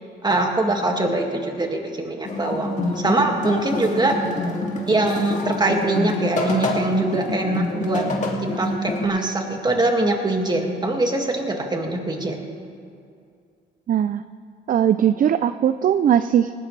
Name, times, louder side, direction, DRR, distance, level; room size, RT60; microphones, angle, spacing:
voice 1, 0.2-4.2 4.9-8.1 8.4-12.5, right 2 dB, 20° right, 2 dB, 2.1 m, -23 dB
sound 1, 2.2-9.1, left 2 dB, 40° left, 2.5 m, -26 dB
voice 2, 13.9-14.2 14.7-16.5, right 9 dB, 45° right, 12 dB, 0.4 m, -19 dB
19.0 x 16.5 x 3.3 m, 2.4 s
cardioid pair, 90°, 20 cm